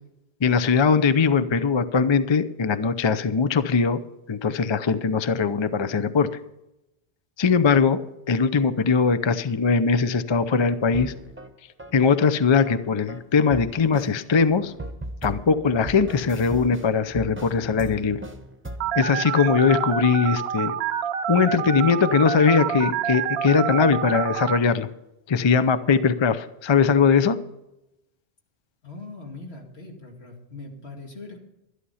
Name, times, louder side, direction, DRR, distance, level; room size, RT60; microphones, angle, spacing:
voice 1, 0.4-4.0 4.3-6.3 7.4-11.1 11.9-14.7 15.2-18.2 19.0-20.8 21.3-24.9 25.3-27.4, left 5 dB, 35° left, 13 dB, 0.4 m, -21 dB
sound 1, 10.3-11.5 11.8-13.3 13.5-18.9, right 1 dB, 10° right, 0.9 m, -38 dB
Telephone, 18.8-24.6, right 8 dB, 65° right, 0.8 m, -27 dB
voice 2, 28.8-31.4, left 3 dB, 65° left, 0 dB, 2.7 m, -41 dB
12.5 x 11.5 x 5.6 m, 0.91 s
omnidirectional pair, 1.1 m